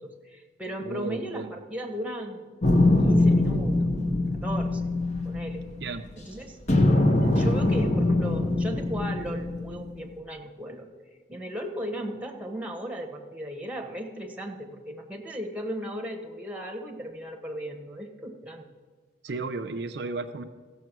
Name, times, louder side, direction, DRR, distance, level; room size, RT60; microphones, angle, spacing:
voice 1, 0.0-2.5 3.0-3.9 4.4-4.8 5.2-5.7 6.2-6.6 7.2-10.9 11.3-18.6, equal, 5° right, 3 dB, 1.1 m, -36 dB
voice 2, 0.8-1.5 5.8-6.0 19.2-20.4, right 3 dB, 65° right, 6 dB, 0.6 m, -34 dB
sound 1, 2.6-6.2 6.7-10.0, left 2 dB, 40° left, 1.1 m, -23 dB
15.0 x 7.2 x 6.0 m, 1.5 s
head